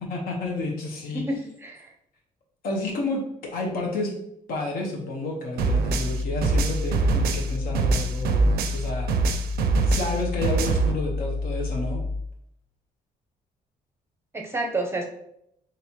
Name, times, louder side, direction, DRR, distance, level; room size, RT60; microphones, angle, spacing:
voice 1, 0.0-1.2 2.6-4.1 4.5-9.1 9.8-12.0, left 2 dB, 70° left, 0 dB, 1.0 m, -30 dB
voice 2, 1.1-1.9 14.3-15.1, right 2 dB, 15° right, 2 dB, 0.6 m, -29 dB
sound 1, 5.6-12.4, left 3 dB, 40° left, 0.5 m, -29 dB
sound 2, 5.6-8.8 9.1-10.9, right 4 dB, 90° right, 0.5 m, -23 dB
4.1 x 3.2 x 2.9 m, 0.75 s
cardioid pair, 125°, 16 cm